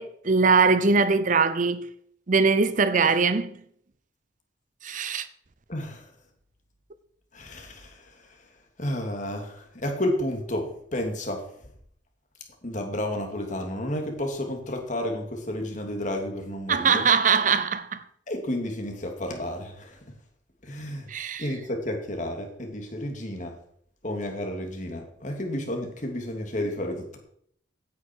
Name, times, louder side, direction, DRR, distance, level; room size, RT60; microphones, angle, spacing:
voice 1, 0.0-1.9 2.3-3.6 4.8-5.3 16.7-18.0 21.1-21.4, right 5 dB, 45° right, 0.7 m, -22 dB
voice 2, 5.7-6.1 7.3-8.2 8.8-11.5 12.6-17.1 18.3-20.0 20.6-21.1 21.4-23.6 24.0-27.2, left 1 dB, 40° left, 2.7 m, -31 dB
16.5 x 9.4 x 4.6 m
head